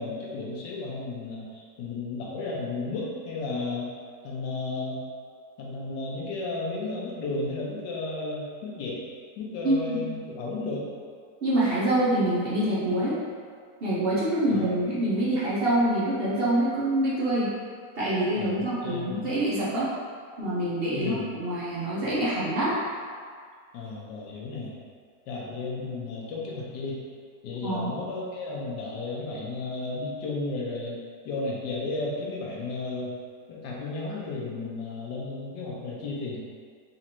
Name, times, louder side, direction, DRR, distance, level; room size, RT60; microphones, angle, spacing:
voice 1, 0.0-3.9 4.2-5.0 5.6-9.0 9.4-10.9 14.5-14.7 18.3-19.3 20.9-21.3 23.7-24.7 25.3-27.0 27.4-33.1 33.5-36.4, left 3 dB, 85° left, -3 dB, 1.3 m, -33 dB
voice 2, 9.6-10.2 11.4-13.2 13.8-17.5 18.0-19.9 20.4-22.8 27.6-27.9, right 1 dB, 60° right, -9 dB, 0.6 m, -26 dB
4.1 x 2.5 x 2.9 m, 2.1 s
omnidirectional pair, 1.9 m